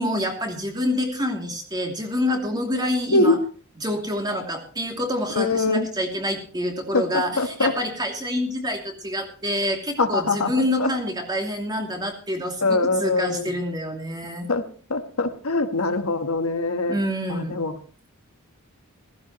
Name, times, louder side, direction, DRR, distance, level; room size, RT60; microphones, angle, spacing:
voice 1, 0.0-3.4 3.8-14.5 16.9-17.6, left 1 dB, 20° right, 2 dB, 2.8 m, -27 dB
voice 2, 5.3-5.9 6.9-7.7 10.0-10.5 10.8-10.9 12.6-13.5 14.5-14.6 14.9-17.0 17.3-17.8, left 3 dB, 80° left, 8 dB, 1.3 m, -23 dB
15.5 x 15.5 x 3.1 m, 0.41 s
head